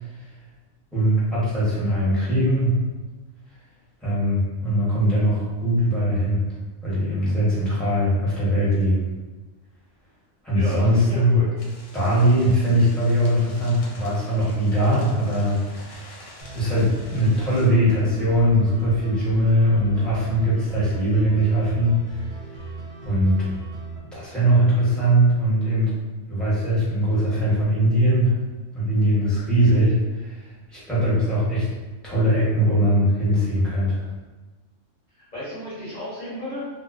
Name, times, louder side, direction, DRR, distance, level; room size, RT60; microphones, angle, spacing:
voice 1, 0.9-2.8 4.0-6.4 6.8-9.1 10.4-11.4 11.9-16.1 16.5-22.2 23.0-23.5 24.1-25.9 26.3-28.3 28.7-31.7 32.0-34.0, equal, ahead, -10 dB, 0.7 m, -21 dB
voice 2, 10.5-11.5 35.3-36.7, left 1 dB, 40° left, -12 dB, 0.7 m, -33 dB
sound 1, 11.6-17.7, left 2 dB, 85° left, 1.0 m, -46 dB
sound 2, 16.4-24.0, right 3 dB, 50° right, 0.7 m, -38 dB
2.3 x 2.2 x 2.4 m, 1.2 s
omnidirectional pair, 1.3 m